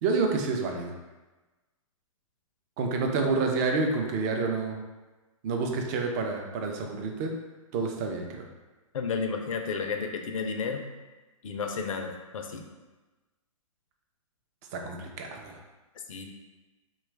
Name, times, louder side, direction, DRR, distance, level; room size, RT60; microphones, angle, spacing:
voice 1, 0.0-0.9 2.8-4.8 5.4-7.3 7.7-8.5 14.7-15.6, right 4 dB, 30° right, 2 dB, 0.4 m, -28 dB
voice 2, 8.9-10.8 11.4-12.7 16.1-16.3, left 5 dB, 70° left, 4 dB, 0.4 m, -32 dB
3.0 x 2.3 x 3.2 m, 1.2 s
hypercardioid pair, 135°, 18 cm